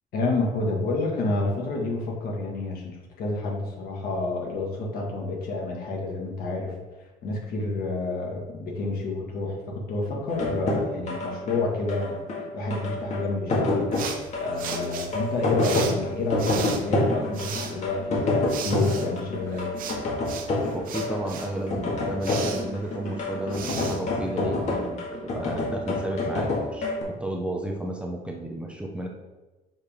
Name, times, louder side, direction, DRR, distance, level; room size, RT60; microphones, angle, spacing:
voice 1, 0.1-6.7 7.2-12.2 12.5-14.0 14.4-19.7, left 2 dB, 65° left, -2 dB, 1.8 m, -29 dB
sound 1, 10.3-27.0, left 2 dB, 45° left, 1.8 m, -27 dB
sound 2, 13.9-24.9, right 7 dB, 60° right, 0.8 m, -38 dB
voice 2, 20.7-25.0 25.3-29.1, right 1 dB, 5° right, 0 dB, 0.6 m, -33 dB
6.5 x 5.0 x 3.6 m, 1.1 s
cardioid pair, 140°, 16 cm